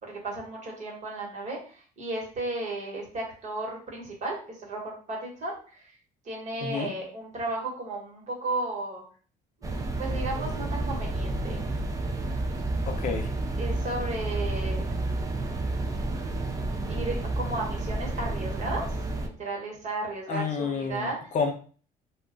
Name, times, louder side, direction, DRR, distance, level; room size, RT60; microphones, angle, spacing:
voice 1, 0.0-5.9 6.2-9.0 9.6-11.6 13.6-14.8 16.9-21.2, right 2 dB, 45° right, -1 dB, 1.2 m, -34 dB
voice 2, 6.6-6.9 12.9-13.3 20.3-21.1 21.3-21.5, left 5 dB, 50° left, 3 dB, 0.5 m, -29 dB
sound 1, 9.6-19.3, right 2 dB, 20° right, 0.4 m, -30 dB
2.3 x 2.1 x 3.7 m, 0.40 s
cardioid pair, 110°, 17 cm